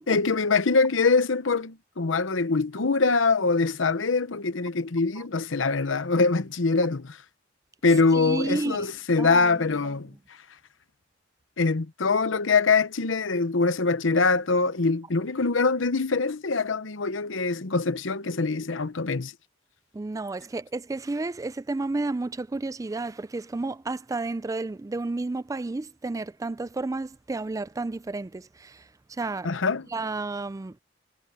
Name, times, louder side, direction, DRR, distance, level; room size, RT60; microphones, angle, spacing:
voice 1, 0.1-7.2 7.8-10.1 11.6-19.3 29.4-29.9, left 4 dB, 80° left, 0.9 m, -24 dB
voice 2, 8.1-8.9 9.2-9.5 19.9-28.8 29.2-29.5 29.9-30.8, right 3 dB, 15° right, 0.3 m, -31 dB
head